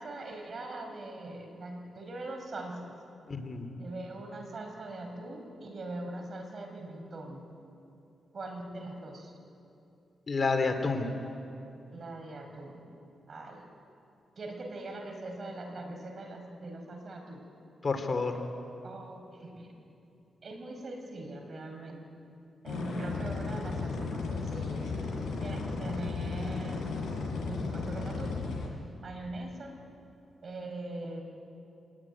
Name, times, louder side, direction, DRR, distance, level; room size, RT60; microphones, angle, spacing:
voice 1, 0.0-2.9 3.8-7.4 8.3-9.3 11.9-12.8 13.3-13.6 14.4-17.4 18.8-19.7 20.4-22.0 22.6-24.9 25.4-26.9 27.5-28.5 29.0-29.8 30.4-31.2, right 2 dB, 50° right, 4 dB, 4.9 m, -41 dB
voice 2, 3.3-3.7 10.3-11.1 17.8-18.4, left 4 dB, 40° left, 6 dB, 2.7 m, -29 dB
sound 1, 22.7-28.7, left 4 dB, 80° left, 7.4 m, -34 dB
25.5 x 19.5 x 9.9 m, 2.7 s
cardioid pair, 90°, 0 cm